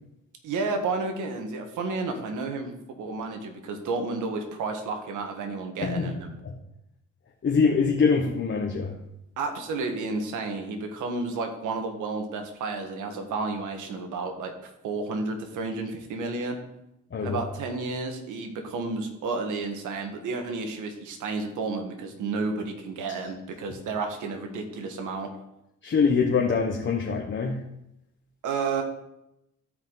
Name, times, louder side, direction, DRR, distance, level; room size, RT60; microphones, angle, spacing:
voice 1, 0.4-6.3 9.4-16.6 17.2-25.3 28.4-28.8, right 3 dB, 80° right, 5 dB, 1.6 m, -31 dB
voice 2, 5.8-6.1 6.4-6.5 7.4-9.0 17.1-17.4 25.8-27.6, left 5 dB, 40° left, 0 dB, 1.2 m, -24 dB
13.5 x 5.0 x 4.0 m, 0.85 s
cardioid pair, 90°, 30 cm